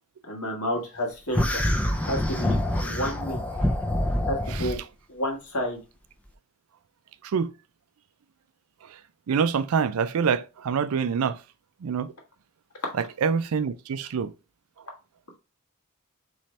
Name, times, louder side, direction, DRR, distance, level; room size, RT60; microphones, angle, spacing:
voice 1, 0.3-1.6 2.0-3.4 4.3-4.8 5.1-5.8, equal, 85° left, 1.5 m, -30 dB
sound 1, 1.3-4.8, left 1 dB, 5° left, 0.4 m, -26 dB
voice 2, 9.3-11.4 11.8-12.1 12.9-14.3, right 6 dB, 80° right, 0.4 m, -26 dB
4.2 x 3.1 x 3.1 m
head